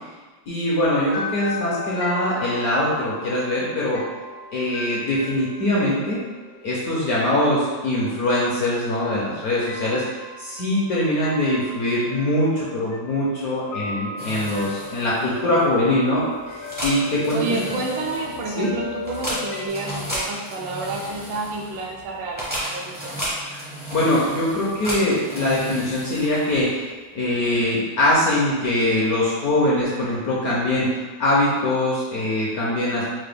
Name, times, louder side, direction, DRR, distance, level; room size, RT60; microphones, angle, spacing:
voice 1, 0.5-4.0 4.5-6.2 6.6-10.0 10.4-17.4 18.6-18.7 23.9-26.9 27.1-33.0, left 1 dB, 65° left, -6 dB, 0.9 m, -22 dB
sound 1, 0.8-19.7, left 3 dB, 85° left, 0.7 m, -36 dB
sound 2, 14.2-26.9, equal, 15° right, 0.4 m, -34 dB
voice 2, 17.3-23.3, right 3 dB, 80° right, -1 dB, 1.4 m, -29 dB
4.7 x 2.1 x 3.3 m, 1.3 s
omnidirectional pair, 2.1 m